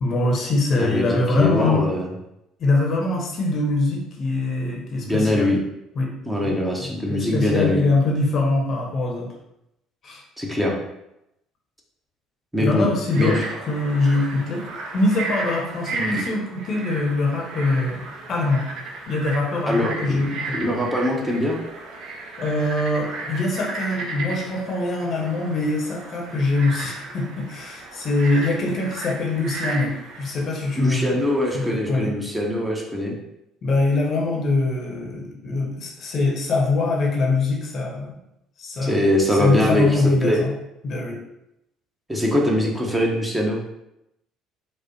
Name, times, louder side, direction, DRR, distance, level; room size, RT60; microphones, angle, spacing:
voice 1, 0.0-1.8 2.6-5.6 5.9-6.1 6.4-9.3 10.0-10.2 12.6-13.4 13.7-14.7 14.9-18.0 18.3-18.6 19.1-20.6 22.4-31.3 31.5-32.1 33.6-38.2 38.6-40.5 40.8-41.2, left 2 dB, 45° left, -1 dB, 0.8 m, -23 dB
voice 2, 0.7-2.1 5.0-5.6 6.3-7.8 10.4-10.8 12.5-12.9 13.2-13.4 15.9-16.1 19.7-20.3 20.5-21.6 30.8-33.2 38.8-40.4 42.1-43.6, left 1 dB, 10° right, -1 dB, 0.8 m, -22 dB
Frog, 13.0-31.7, right 3 dB, 55° right, 0.6 m, -34 dB
4.8 x 2.0 x 3.0 m, 0.84 s
figure-of-eight pair, 55°, 0 cm